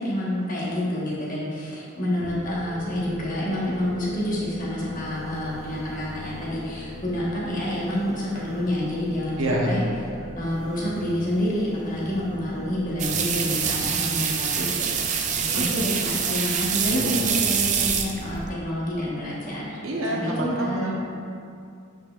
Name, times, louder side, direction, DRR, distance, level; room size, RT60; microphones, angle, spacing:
voice 1, 0.0-9.8 10.4-20.9, left 1 dB, 40° left, -6 dB, 1.3 m, -28 dB
sound 1, 2.2-14.1, left 1 dB, 60° left, 1.2 m, -40 dB
voice 2, 9.4-9.7 15.4-15.7 16.9-17.2 19.8-21.0, right 1 dB, 80° right, -2 dB, 1.0 m, -27 dB
sound 2, 13.0-18.5, right 7 dB, 35° right, 0.4 m, -25 dB
7.8 x 5.4 x 2.4 m, 2.4 s
head